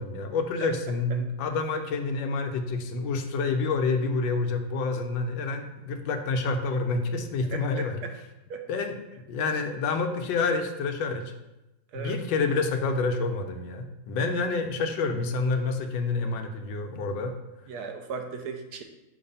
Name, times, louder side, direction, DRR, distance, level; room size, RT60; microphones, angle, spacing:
voice 1, 0.0-8.0 8.7-9.0 9.3-11.3 11.9-17.3, left 3 dB, 85° left, 5 dB, 1.4 m, -28 dB
voice 2, 7.5-8.1 8.5-8.6 11.9-12.2 17.7-18.8, right 5 dB, 70° right, 5 dB, 1.1 m, -37 dB
6.6 x 3.1 x 5.4 m, 0.96 s
omnidirectional pair, 2.0 m